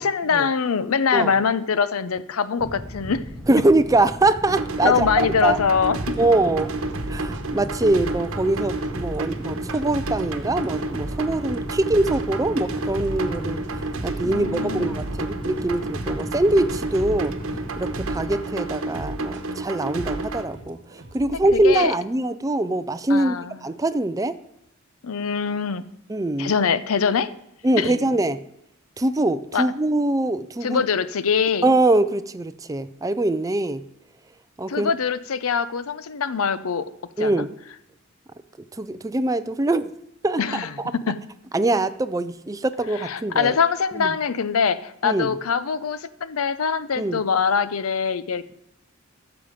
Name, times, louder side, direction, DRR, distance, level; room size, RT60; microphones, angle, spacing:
voice 1, 0.0-3.2 4.8-6.2 14.2-15.1 21.2-21.9 23.1-23.6 25.0-25.8 26.4-27.3 27.8-28.0 29.5-29.7 30.6-31.7 34.7-36.8 37.2-37.5 40.4-40.7 41.1-41.2 43.0-48.5, left 6 dB, 80° left, 15 dB, 0.6 m, -23 dB
sound 1, 2.6-18.4, equal, 5° left, 0.9 m, -36 dB
voice 2, 3.5-5.6 6.2-6.7 7.1-13.6 14.0-17.3 17.8-23.4 23.6-24.4 26.1-26.5 27.6-28.4 29.0-30.8 31.6-33.8 34.6-34.9 37.2-37.5 38.8-39.9 40.2-40.4 40.8-40.9 41.5-43.6 43.9-44.2 45.0-45.3 47.0-47.2, right 2 dB, 15° right, 11 dB, 0.4 m, -23 dB
sound 2, 4.4-20.4, right 2 dB, 75° right, 1.1 m, -30 dB
sound 3, 5.4-22.0, right 1 dB, 55° right, 1.3 m, -46 dB
14.0 x 7.0 x 5.1 m, 0.77 s
head